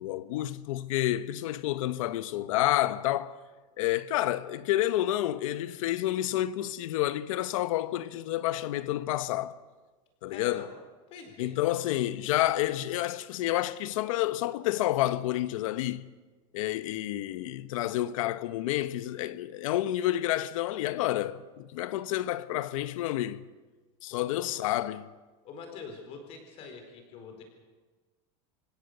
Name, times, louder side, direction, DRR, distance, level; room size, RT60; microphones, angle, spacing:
voice 1, 0.0-3.4 3.8-9.6 10.2-10.7 11.4-16.1 16.5-23.4 24.0-25.1, left 14 dB, 80° left, 1.0 m, -29 dB
voice 2, 10.3-10.7 11.1-11.6 24.1-24.5 25.4-27.4, left 5 dB, 35° left, 4.5 m, -45 dB
28.0 x 16.5 x 6.7 m
supercardioid pair, 175°, 17 cm